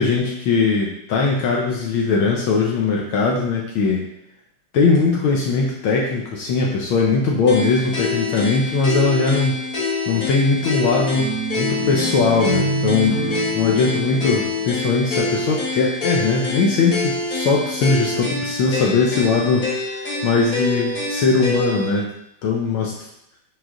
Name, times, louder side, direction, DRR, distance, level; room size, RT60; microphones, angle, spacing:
voice 1, 0.0-4.0 4.7-9.6 10.1-22.1 22.4-22.9, left 4 dB, 75° left, -2 dB, 1.6 m, -20 dB
sound 1, 7.5-21.9, left 3 dB, 45° left, 1.8 m, -26 dB
sound 2, 11.1-16.2, right 4 dB, 30° left, 1.6 m, -29 dB
6.3 x 4.7 x 3.7 m, 0.78 s
omnidirectional pair, 2.4 m